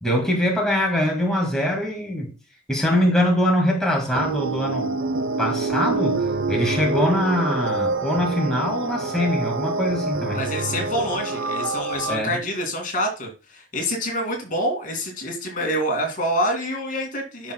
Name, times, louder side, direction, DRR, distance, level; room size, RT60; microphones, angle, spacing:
voice 1, 0.0-2.3 2.7-4.9 5.4-10.4 12.1-12.4, left 1 dB, 5° left, 1.9 m, -23 dB
sound 1, 4.1-12.2, right 3 dB, 90° right, 0.6 m, -26 dB
voice 2, 10.3-17.5, equal, 45° left, 2.2 m, -26 dB
10.5 x 5.7 x 2.2 m
head